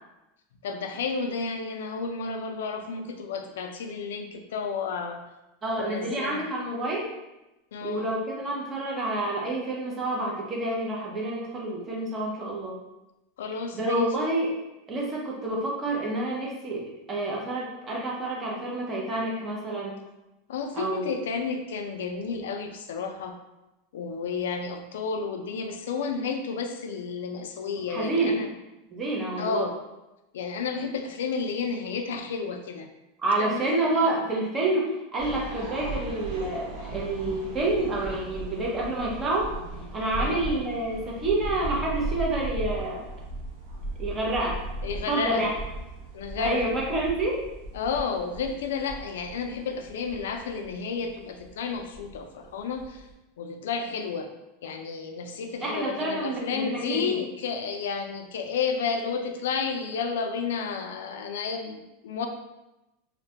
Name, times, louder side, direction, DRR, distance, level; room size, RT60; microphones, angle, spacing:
voice 1, 0.6-5.2 5.8-6.5 7.7-8.1 13.4-14.1 20.5-23.4 23.9-28.5 29.4-29.7 30.3-32.9 33.4-33.6 34.0-34.1 40.2-40.5 44.8-45.5 46.1-46.7 47.7-53.1 53.4-54.3 54.6-62.3, left 5 dB, 90° left, 5 dB, 0.3 m, -31 dB
voice 2, 5.6-7.1 7.8-12.8 13.7-14.5 14.9-20.0 20.7-21.2 27.9-28.4 28.9-29.7 33.2-39.5 39.9-43.1 44.0-44.6 45.1-45.5 46.3-47.4 55.6-57.2, right 2 dB, 20° right, -3 dB, 0.5 m, -28 dB
sound 1, 35.2-53.1, right 2 dB, 75° right, 0.8 m, -37 dB
2.2 x 2.1 x 2.7 m, 0.97 s
supercardioid pair, 160°, 0 cm